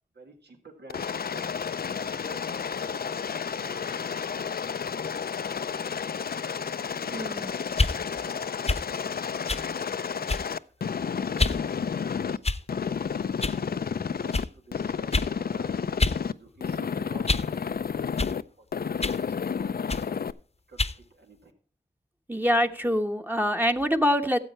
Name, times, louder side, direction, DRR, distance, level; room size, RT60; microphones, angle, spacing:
voice 1, 0.1-1.4 1.8-3.2 3.5-4.6 6.7-7.7 8.0-8.8 9.6-10.9 14.0-16.0 16.3-18.6 19.1-19.4 20.0-20.2 20.7-21.5, right 2 dB, 80° right, 3 dB, 2.0 m, -53 dB
Aircraft, 0.9-12.4 12.7-14.4 14.7-16.3 16.6-18.4 18.7-20.3, left 6 dB, 60° left, 0.5 m, -31 dB
voice 2, 7.1-7.5 22.3-24.4, equal, 10° right, 5 dB, 1.1 m, -25 dB
sound 1, 7.7-8.0 8.7-8.9 9.5-9.7 10.3-10.6 11.4-11.6 12.4-12.8 13.4-13.6 14.3-14.5 15.1-15.3 16.0-16.2 16.6-17.5 18.2-18.4 19.0-19.2 19.9-20.1 20.8-21.0, left 3 dB, 35° left, 0.8 m, -27 dB
14.0 x 7.8 x 4.3 m, 0.43 s
cardioid pair, 45°, 17 cm